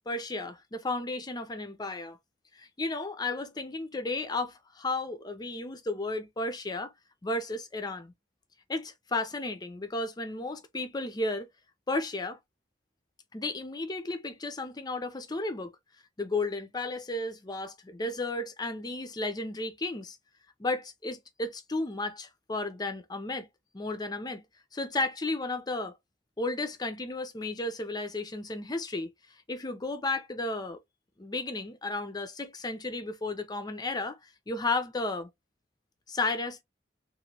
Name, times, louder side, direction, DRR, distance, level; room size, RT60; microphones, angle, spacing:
voice 1, 0.1-2.2 2.5-6.9 7.2-8.1 8.7-11.5 11.9-12.4 13.3-15.7 16.2-20.2 20.6-23.5 23.7-24.4 24.7-25.9 26.4-29.1 29.5-30.8 31.2-35.3 36.1-36.6, left 2 dB, 20° left, 0.5 m, -33 dB
3.0 x 2.6 x 2.7 m
head